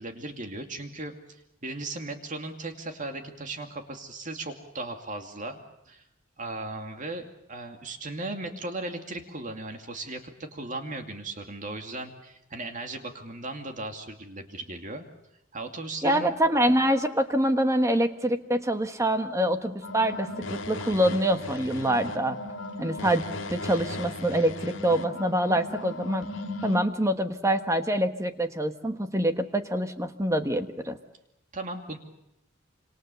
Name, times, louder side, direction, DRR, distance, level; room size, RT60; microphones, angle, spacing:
voice 1, 0.0-5.6 5.9-6.0 6.4-10.2 10.5-15.1 15.5-16.4 31.5-32.0, right 2 dB, 40° right, 5 dB, 2.5 m, -37 dB
voice 2, 16.0-22.4 22.8-26.3 26.6-31.0, right 1 dB, 15° right, 8 dB, 1.3 m, -25 dB
sound 1, 19.8-26.8, left 2 dB, 70° left, 2.9 m, -37 dB
27.0 x 27.0 x 7.0 m, 0.84 s
head